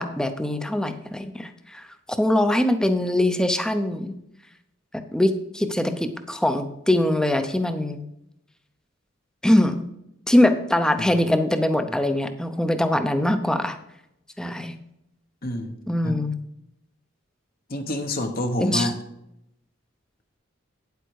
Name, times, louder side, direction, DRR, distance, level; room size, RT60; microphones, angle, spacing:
voice 1, 0.0-1.8 2.2-4.1 4.9-8.0 9.4-9.9 10.3-13.8 14.4-14.7 15.9-16.4 18.6-18.9, left 1 dB, 5° left, 8 dB, 0.7 m, -22 dB
voice 2, 15.4-15.7 16.0-16.2 17.7-18.9, left 1 dB, 50° left, 5 dB, 1.2 m, -27 dB
9.2 x 8.1 x 4.7 m, 0.81 s
head